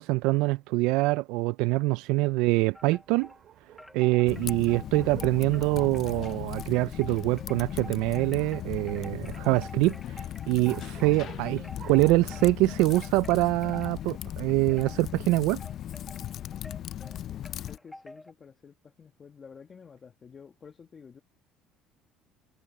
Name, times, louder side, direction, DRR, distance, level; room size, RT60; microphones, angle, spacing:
voice 1, 0.0-3.3 3.9-15.6, right 21 dB, 80° right, 0.4 m, -25 dB
Wind chime, 2.7-3.4 3.8-18.3, left 1 dB, 5° left, 2.0 m, -49 dB
sound 1, 2.7-12.4, right 10 dB, 50° right, 6.7 m, -54 dB
Typing, 4.3-17.8, left 11 dB, 55° left, 0.5 m, -38 dB
voice 2, 17.3-21.2, left 6 dB, 30° left, 1.4 m, -51 dB
cardioid pair, 110°, 0 cm